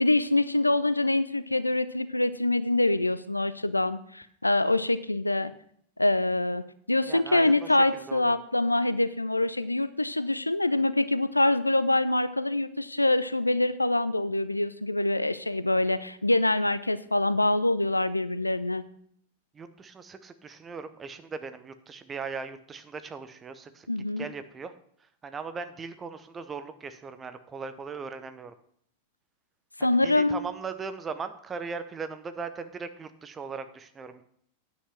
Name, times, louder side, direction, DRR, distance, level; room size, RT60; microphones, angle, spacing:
voice 1, 0.0-5.5 6.0-6.6 6.9-18.8 23.9-24.3 29.8-30.4, left 2 dB, 85° left, 15 dB, 0.4 m, -25 dB
voice 2, 7.1-8.4 19.5-23.9 24.2-24.7 25.2-28.5 29.8-34.2, right 5 dB, 20° right, 10 dB, 0.8 m, -39 dB
9.7 x 6.1 x 5.9 m, 0.66 s
figure-of-eight pair, 90°, 0 cm